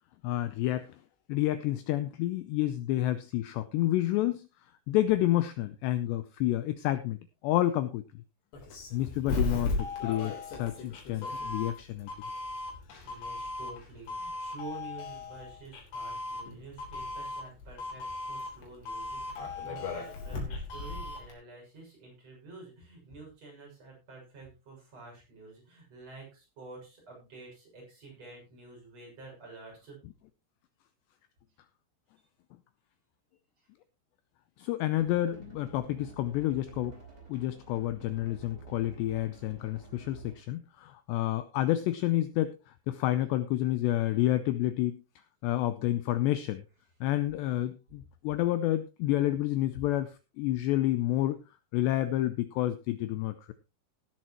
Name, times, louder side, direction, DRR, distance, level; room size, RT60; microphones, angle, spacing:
voice 1, 0.2-1.0 1.3-4.5 4.9-7.2 7.4-8.0 8.9-9.7 10.0-12.1 34.6-37.0 37.3-42.6 42.9-45.0 45.4-46.6 47.0-51.4 51.7-53.5, left 14 dB, 85° left, 12 dB, 2.4 m, -29 dB
Doorbell, 8.5-21.3, left 3 dB, 60° left, 5.4 m, -37 dB
voice 2, 9.2-9.7 11.2-11.3 13.0-30.1 33.6-33.7, right 3 dB, 30° right, -1 dB, 7.4 m, -49 dB
sound 1, 35.0-40.5, right 3 dB, 10° right, 3.7 m, -50 dB
17.0 x 10.0 x 3.0 m, 0.28 s
omnidirectional pair, 5.8 m